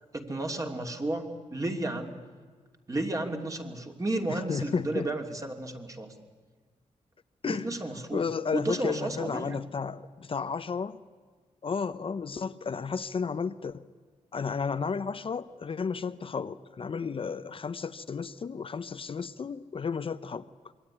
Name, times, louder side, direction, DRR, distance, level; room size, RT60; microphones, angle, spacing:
voice 1, 0.1-2.2 2.9-6.1 7.4-9.6, right 2 dB, 25° right, 3 dB, 2.9 m, -33 dB
voice 2, 4.3-5.1 7.4-7.7 8.1-11.0 11.6-13.8 14.3-20.5, left 5 dB, 45° left, 11 dB, 0.8 m, -33 dB
26.5 x 22.5 x 10.0 m, 1.5 s
wide cardioid pair, 105°, 13 cm